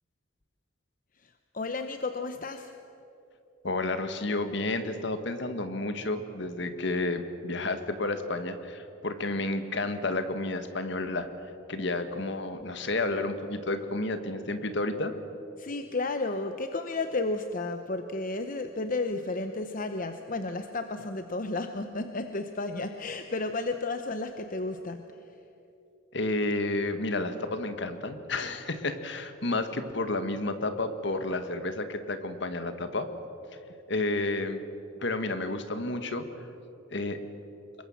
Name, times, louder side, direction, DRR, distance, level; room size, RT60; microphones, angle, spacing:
voice 1, 1.5-2.8 15.6-25.0, left 3 dB, 45° left, 7 dB, 0.9 m, -32 dB
voice 2, 3.6-11.3 11.7-15.1 26.1-33.1 33.9-34.6 35.0-36.2 36.9-37.2, left 2 dB, 60° left, 9 dB, 1.7 m, -31 dB
26.5 x 22.5 x 7.2 m, 2.8 s
head